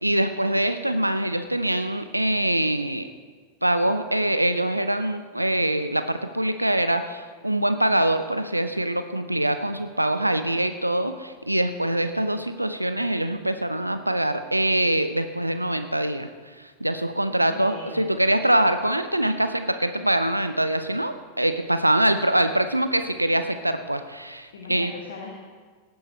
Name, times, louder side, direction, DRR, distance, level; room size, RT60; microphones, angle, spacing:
voice 1, 0.0-3.1 3.6-16.3 16.6-24.9, right 1 dB, 85° right, 10 dB, 0.6 m, -24 dB
voice 2, 17.3-18.2 24.5-25.3, left 4 dB, 60° left, 0 dB, 1.6 m, -39 dB
18.0 x 9.5 x 4.2 m, 1.5 s
figure-of-eight pair, 90°, 0 cm